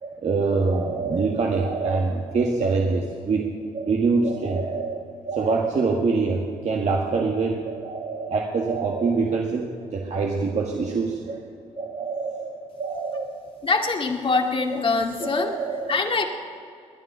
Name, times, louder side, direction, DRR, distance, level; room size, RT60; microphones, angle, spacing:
voice 1, 0.0-11.4 11.8-13.3 15.2-16.3, right 4 dB, 55° right, 0 dB, 1.7 m, -25 dB
voice 2, 13.6-15.6 15.9-16.3, left 4 dB, 40° left, 2 dB, 2.1 m, -23 dB
21.5 x 9.9 x 5.6 m, 2.3 s
supercardioid pair, 60°, 14 cm